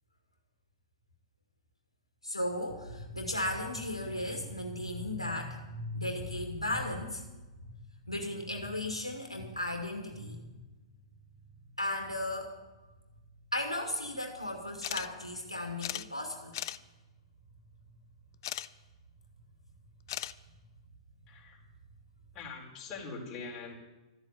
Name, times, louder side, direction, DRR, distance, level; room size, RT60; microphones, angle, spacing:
voice 1, 2.2-7.2 8.1-10.4 11.8-12.5 13.5-16.5, left 1 dB, 90° left, 2 dB, 2.2 m, -35 dB
sound 1, 14.8-15.1 15.4-15.5 15.8-16.1 16.5-16.8 18.4-18.7 20.1-20.3, left 13 dB, 45° left, 0.5 m, -36 dB
voice 2, 21.3-21.6 22.3-23.7, left 4 dB, 25° left, -2 dB, 4.6 m, -43 dB
13.0 x 8.7 x 9.5 m, 1.1 s
figure-of-eight pair, 110°, 3 cm